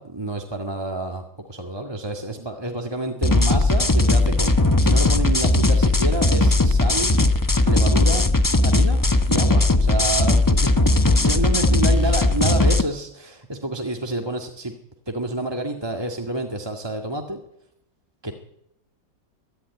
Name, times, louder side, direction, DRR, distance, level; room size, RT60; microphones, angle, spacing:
voice 1, 0.0-7.1 7.6-8.3 8.6-14.7 15.1-17.4 18.2-18.3, right 1 dB, 15° right, 3 dB, 1.8 m, -29 dB
sound 1, 3.2-12.8, left 2 dB, 20° left, 0.5 m, -18 dB
23.0 x 13.5 x 9.6 m, 0.80 s
omnidirectional pair, 2.0 m